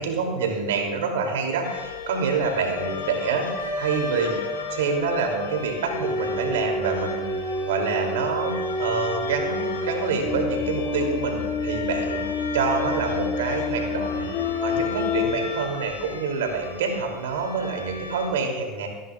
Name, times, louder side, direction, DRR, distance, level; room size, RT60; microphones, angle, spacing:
voice 1, 0.0-4.4 4.7-7.3 7.7-12.2 12.5-14.3 14.6-18.9, right 4 dB, 75° right, 2 dB, 2.7 m, -27 dB
sound 1, 1.6-18.3, left 6 dB, 85° left, 1.9 m, -36 dB
sound 2, 2.8-15.4, left 2 dB, 40° left, 4.3 m, -29 dB
26.0 x 11.0 x 2.4 m, 1.3 s
hypercardioid pair, 80°, 0 cm